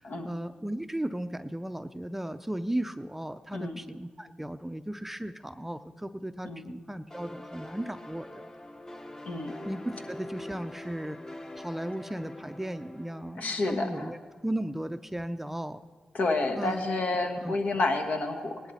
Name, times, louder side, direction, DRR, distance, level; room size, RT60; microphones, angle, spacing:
voice 1, 0.0-8.4 9.6-11.2 11.6-14.2 14.4-15.8 16.6-16.9 17.4-17.6, right 1 dB, 10° right, 10 dB, 0.5 m, -35 dB
sound 1, 7.1-14.6, left 1 dB, 25° left, 1.0 m, -44 dB
voice 2, 13.4-14.1 16.1-18.7, left 2 dB, 70° left, 4 dB, 1.4 m, -29 dB
18.0 x 11.0 x 4.2 m, 1.4 s
supercardioid pair, 45°, 3 cm